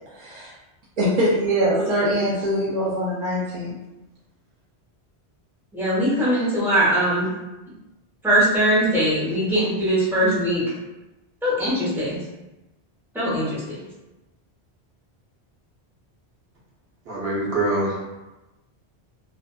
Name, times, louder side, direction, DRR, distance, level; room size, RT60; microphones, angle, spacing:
voice 1, 0.2-0.5 1.0-3.7, equal, 55° right, -7 dB, 0.4 m, -23 dB
voice 2, 5.7-7.3 8.2-10.6 11.4-12.2 13.1-13.8, right 1 dB, ahead, -10 dB, 0.8 m, -21 dB
voice 3, 17.1-18.0, right 2 dB, 70° right, -6 dB, 0.9 m, -24 dB
2.4 x 2.3 x 2.3 m, 1.0 s
omnidirectional pair, 1.1 m